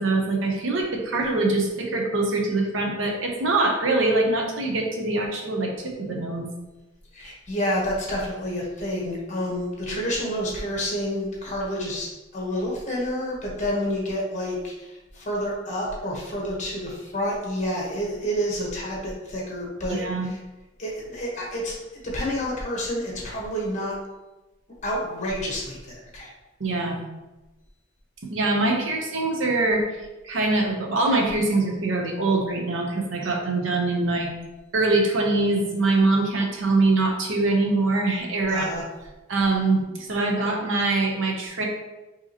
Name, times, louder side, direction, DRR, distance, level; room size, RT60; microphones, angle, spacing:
voice 1, 0.0-6.5 19.9-20.3 26.6-27.0 28.3-29.8 30.2-34.3 34.7-38.7 39.3-41.6, right 2 dB, 80° right, 1 dB, 0.7 m, -23 dB
voice 2, 7.1-20.4 20.8-24.0 24.8-26.3 38.5-38.8, equal, 40° left, -2 dB, 1.1 m, -29 dB
4.7 x 2.9 x 2.8 m, 1.1 s
head